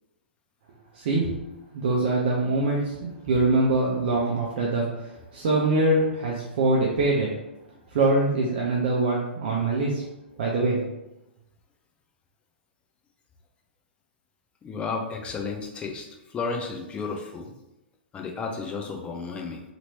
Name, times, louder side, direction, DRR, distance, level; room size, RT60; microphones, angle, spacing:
voice 1, 0.9-1.3 1.7-7.3 7.9-10.0 10.4-10.8, right 2 dB, 55° right, -3 dB, 0.6 m, -23 dB
voice 2, 14.6-17.5 18.1-19.6, left 4 dB, 20° left, 2 dB, 0.5 m, -33 dB
2.9 x 2.9 x 2.7 m, 0.93 s
figure-of-eight pair, 115°, 6 cm